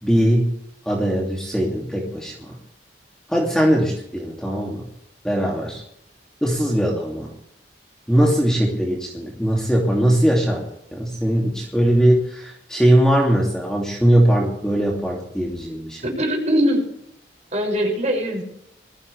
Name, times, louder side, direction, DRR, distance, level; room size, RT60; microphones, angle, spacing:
voice 1, 0.0-0.5 0.8-2.6 3.3-4.9 5.2-5.8 6.4-7.3 8.1-10.6 10.9-16.0, right 1 dB, 5° left, -3 dB, 2.7 m, -20 dB
voice 2, 16.0-16.8 17.5-18.4, equal, 40° right, 0 dB, 6.5 m, -21 dB
21.5 x 15.0 x 3.5 m, 0.74 s
head